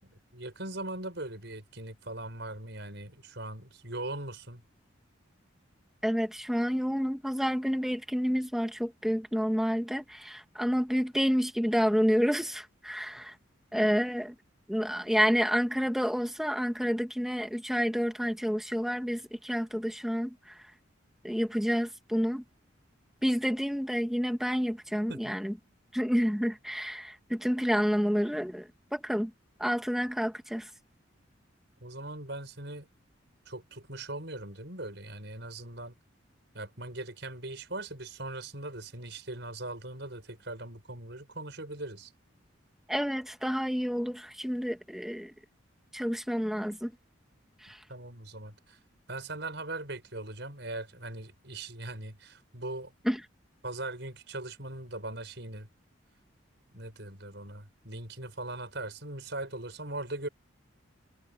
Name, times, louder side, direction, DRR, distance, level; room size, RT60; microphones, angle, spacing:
voice 1, 0.0-4.6 25.1-25.3 31.8-32.9 33.5-35.9 36.5-42.1 47.9-48.8 49.1-52.9 53.6-55.7 56.7-60.3, right 2 dB, 60° right, 6.6 m, -40 dB
voice 2, 6.0-13.4 13.7-14.3 14.7-20.6 21.2-22.4 23.2-25.6 25.9-29.3 29.6-30.7 42.9-45.3 45.9-46.9 47.6-47.8 53.1-53.2, equal, ahead, 1.8 m, -29 dB
head